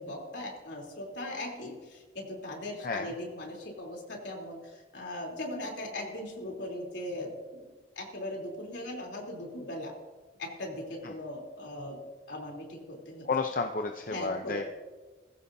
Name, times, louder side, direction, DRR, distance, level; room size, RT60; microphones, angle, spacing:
voice 1, 0.0-7.7 8.0-9.9 10.4-12.0 12.3-13.3 14.1-14.6, left 1 dB, 75° left, -1 dB, 3.5 m, -39 dB
voice 2, 13.3-14.7, left 4 dB, 45° left, 4 dB, 0.7 m, -31 dB
19.5 x 15.5 x 2.8 m, 1.3 s
head